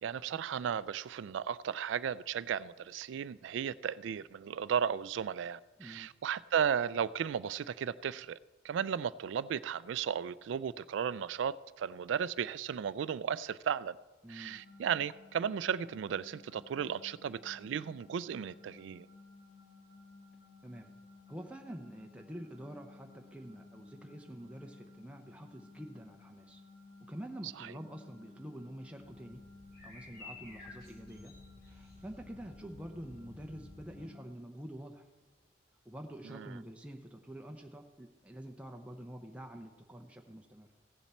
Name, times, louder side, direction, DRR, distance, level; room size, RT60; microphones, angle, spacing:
voice 1, 0.0-8.4 8.6-14.0 14.3-19.1 27.4-27.7 36.2-36.6, right 8 dB, 75° right, 0.3 m, -35 dB
voice 2, 5.8-6.1 14.2-14.6 20.6-20.9 21.3-26.6 27.1-29.4 29.8-31.3 31.7-35.1 35.8-40.7, right 1 dB, 5° right, 0.6 m, -47 dB
sound 1, 14.5-34.3, left 3 dB, 85° left, 4.1 m, -56 dB
sound 2, 29.0-34.0, left 2 dB, 50° left, 3.3 m, -53 dB
16.0 x 7.2 x 4.3 m
head